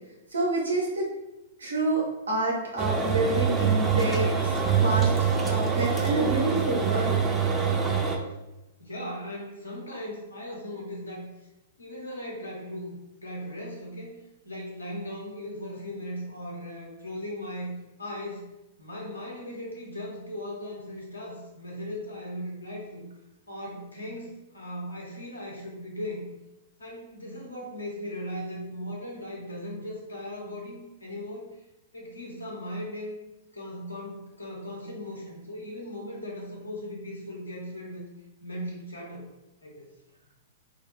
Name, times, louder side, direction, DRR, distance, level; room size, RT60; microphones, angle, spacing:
voice 1, 0.3-1.1 1.6-4.6 4.8-5.1 5.5-7.2, right 2 dB, 80° right, -3 dB, 0.8 m, -28 dB
sound 1, 2.8-8.2, right 6 dB, 15° right, 0.4 m, -25 dB
voice 2, 8.8-11.3 11.8-14.1 14.4-18.5 18.8-23.0 23.5-26.3 26.8-31.6 31.9-33.2 33.5-38.0 38.4-39.3 39.6-39.9, equal, 90° left, -3 dB, 0.7 m, -38 dB
2.2 x 2.1 x 3.0 m, 0.96 s
figure-of-eight pair, 110°, 0 cm